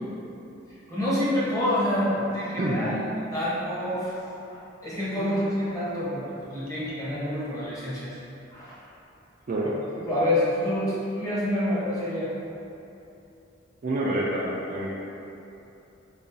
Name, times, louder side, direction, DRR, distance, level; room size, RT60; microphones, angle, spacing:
voice 1, 0.9-3.0 3.3-4.1 4.8-8.2 8.5-8.8 10.0-12.3, left 1 dB, 15° left, -10 dB, 0.8 m, -27 dB
voice 2, 13.8-14.9, right 1 dB, 40° right, -5 dB, 0.3 m, -27 dB
4.0 x 2.3 x 2.5 m, 2.9 s
head